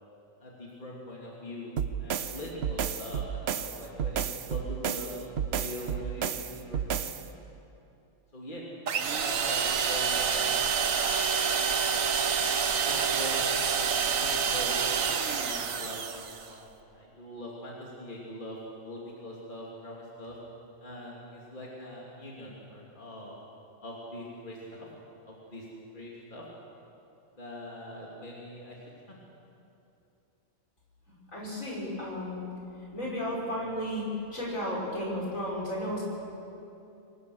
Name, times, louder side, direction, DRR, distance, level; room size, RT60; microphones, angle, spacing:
voice 1, 0.4-5.1 5.6-7.1 8.3-8.6 8.9-10.7 12.9-13.5 14.2-18.6 18.8-20.4 20.8-23.3 23.8-24.9 25.2-25.7 25.9-26.4 27.4-28.8 29.1-29.2, left 1 dB, 35° left, -4 dB, 3.0 m, -42 dB
sound 1, 1.8-7.3, right 8 dB, 55° right, 0.9 m, -32 dB
sound 2, 8.9-16.5, right 6 dB, 75° right, 1.4 m, -27 dB
voice 2, 31.3-32.4 32.9-34.0 34.3-36.0, equal, 70° left, -4 dB, 5.9 m, -33 dB
23.5 x 19.5 x 6.5 m, 2.8 s
omnidirectional pair, 1.4 m